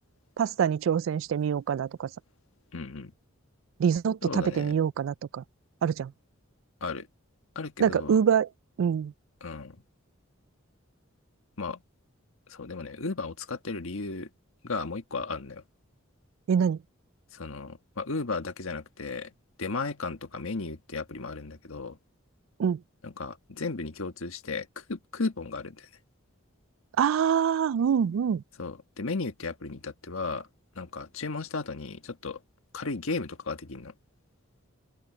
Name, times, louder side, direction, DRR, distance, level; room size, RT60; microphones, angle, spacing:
voice 1, 0.4-2.1 3.8-5.4 5.8-6.1 7.8-8.5 8.8-9.1 16.5-16.8 22.6-22.8 27.0-28.4, right 7 dB, 65° right, 0.3 m, -25 dB
voice 2, 2.7-3.1 4.2-4.8 6.8-7.1 7.5-8.2 9.4-9.8 11.6-11.8 12.5-14.3 14.6-15.6 17.3-19.3 19.6-22.0 23.0-25.9 28.6-30.5 30.7-32.4 32.7-33.9, left 3 dB, 75° left, 1.4 m, -35 dB
open air
head